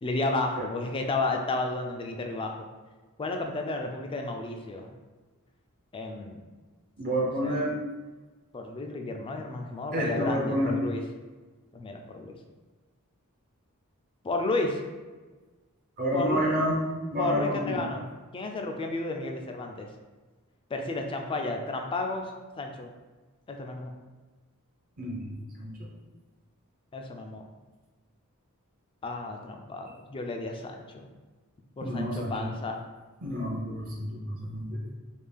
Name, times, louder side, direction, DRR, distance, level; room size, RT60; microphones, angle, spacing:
voice 1, 0.0-2.7 3.2-4.9 5.9-6.4 7.4-7.6 8.5-11.0 11.7-12.3 14.2-14.8 16.1-16.5 17.2-18.1 18.3-19.9 20.7-22.9 23.5-23.9 26.9-27.4 29.0-31.1 31.8-32.8, left 2 dB, 25° left, 3 dB, 0.3 m, -32 dB
voice 2, 7.0-7.7 9.9-10.7 16.0-16.8 17.1-17.8 25.0-25.3 25.6-25.9 31.8-32.5 33.2-34.9, equal, 40° right, -3 dB, 0.6 m, -29 dB
3.5 x 2.3 x 3.3 m, 1.3 s
head